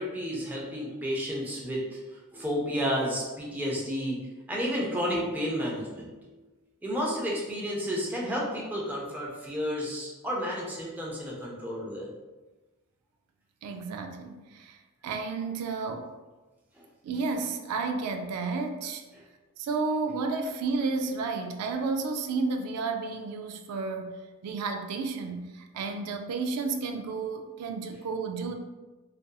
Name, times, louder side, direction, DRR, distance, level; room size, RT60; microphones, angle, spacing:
voice 1, 0.0-2.0 2.3-4.2 4.5-6.2 6.8-12.1 16.7-16.8, equal, 10° right, -4 dB, 0.4 m, -31 dB
voice 2, 13.6-14.8 15.0-16.1 17.0-19.0 19.6-28.6, right 4 dB, 85° right, 10 dB, 0.3 m, -32 dB
2.7 x 2.5 x 2.2 m, 1.2 s
head